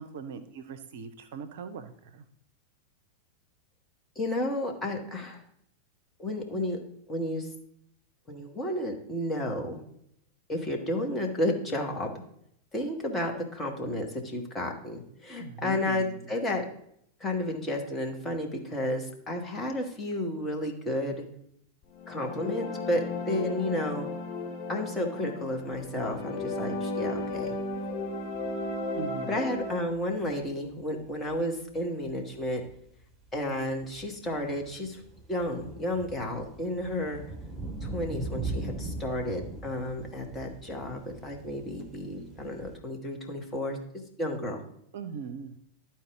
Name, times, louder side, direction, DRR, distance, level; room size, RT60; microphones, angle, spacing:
voice 1, 0.0-2.2 15.4-16.3 28.9-29.4 44.9-45.6, right 6 dB, 55° right, 11 dB, 0.5 m, -40 dB
voice 2, 4.1-5.4 6.2-6.8 7.1-7.5 8.3-9.8 10.5-12.2 12.7-16.6 17.2-21.2 22.1-24.1 24.7-27.6 29.3-32.6 33.3-35.0 35.3-37.2 37.8-43.8 44.2-44.6, left 1 dB, 15° left, 1 dB, 1.5 m, -32 dB
sound 1, 21.9-29.8, left 2 dB, 40° left, 1.7 m, -34 dB
sound 2, 25.7-25.8 26.1-26.6 27.0-29.0 29.6-29.7 29.9-30.0 30.2-30.4 31.0-31.8 32.0-42.8, right 2 dB, 5° right, 2.3 m, -40 dB
12.0 x 4.5 x 3.6 m, 0.71 s
figure-of-eight pair, 90°, 0 cm